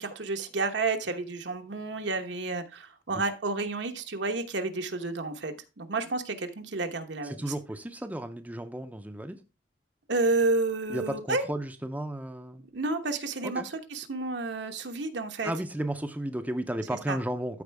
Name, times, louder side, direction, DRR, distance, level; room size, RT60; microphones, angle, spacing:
voice 1, 0.0-7.4 10.1-11.4 12.7-15.5 17.1-17.2, right 3 dB, 75° right, 6 dB, 1.1 m, -30 dB
voice 2, 7.2-9.4 10.9-12.7 13.4-13.7 15.4-17.6, right 1 dB, 10° right, 7 dB, 0.5 m, -34 dB
13.0 x 4.5 x 3.4 m, 0.29 s
head